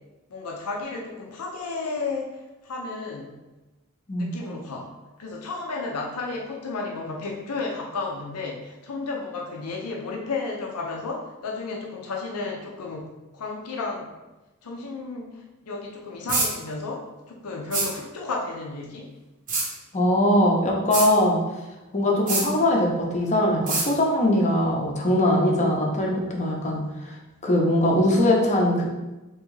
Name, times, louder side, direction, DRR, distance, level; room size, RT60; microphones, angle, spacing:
voice 1, 0.3-3.4 4.1-4.9 5.2-14.1 14.6-19.1 22.5-22.6, left 3 dB, 80° left, 0 dB, 0.6 m, -33 dB
sound 1, 16.3-16.5 17.7-17.9 19.5-19.7 20.9-21.1 22.3-22.5 23.7-23.9, right 3 dB, 40° right, 0.7 m, -24 dB
voice 2, 19.9-21.4 21.9-27.1 27.4-28.8, left 1 dB, 30° left, -1 dB, 0.6 m, -21 dB
3.5 x 3.0 x 3.1 m, 1.1 s
head